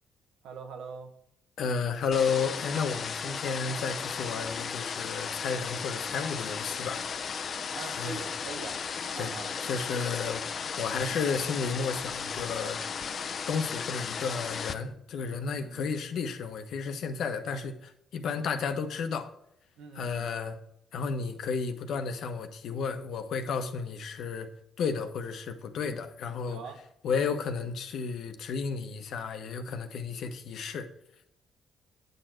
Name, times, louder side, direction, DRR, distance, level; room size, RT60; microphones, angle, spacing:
voice 1, 0.4-1.1 7.7-8.8 9.1-9.5 15.4-15.8 18.2-18.4 19.8-20.3 26.5-26.8, right 5 dB, 85° right, 5 dB, 1.3 m, -43 dB
voice 2, 1.6-7.2 7.8-8.3 9.2-9.3 9.6-10.4 10.8-12.8 13.5-19.3 19.9-20.6 20.9-24.5 24.8-26.6 27.0-30.9, left 5 dB, 75° left, 7 dB, 1.1 m, -32 dB
sound 1, 2.1-14.7, left 6 dB, 50° left, 0.6 m, -35 dB
9.0 x 6.7 x 4.5 m, 0.74 s
cardioid pair, 90°, 0 cm